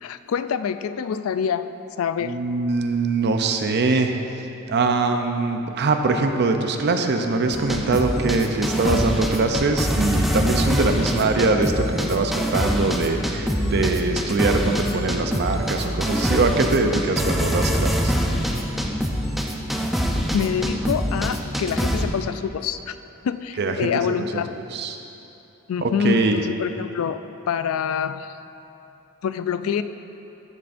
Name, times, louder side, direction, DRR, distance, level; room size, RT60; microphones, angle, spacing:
voice 1, 0.0-1.7 2.0-2.3 20.3-23.0 23.2-24.5 25.7-28.3 29.2-29.8, left 7 dB, 75° left, 12 dB, 0.3 m, -26 dB
voice 2, 2.2-4.2 4.7-18.1 23.6-24.0 24.7-25.0 25.8-26.4, right 3 dB, 55° right, 5 dB, 0.6 m, -22 dB
sound 1, 7.5-22.0, equal, ahead, 0.5 m, -24 dB
12.5 x 7.6 x 2.6 m, 3.0 s
head